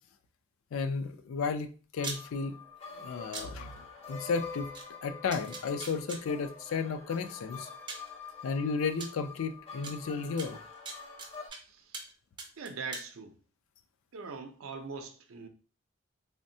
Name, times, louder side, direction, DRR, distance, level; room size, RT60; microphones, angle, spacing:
voice 1, 0.7-2.6 2.9-4.7 5.0-7.7 8.4-10.6, left 5 dB, 85° left, 0.4 m, -33 dB
sound 1, 2.0-11.5, left 5 dB, 30° left, 0.5 m, -46 dB
sound 2, 2.0-2.2 3.3-3.5 4.7-4.8 5.3-6.2 7.3-7.4 7.9-8.1 9.0-9.1 9.8-9.9 10.4-11.6 11.9-12.1 12.4-13.1, right 3 dB, 20° right, 0.4 m, -40 dB
voice 2, 11.4-12.0 12.6-13.4 14.1-15.5, right 4 dB, 90° right, 0.5 m, -42 dB
3.4 x 2.1 x 2.6 m
head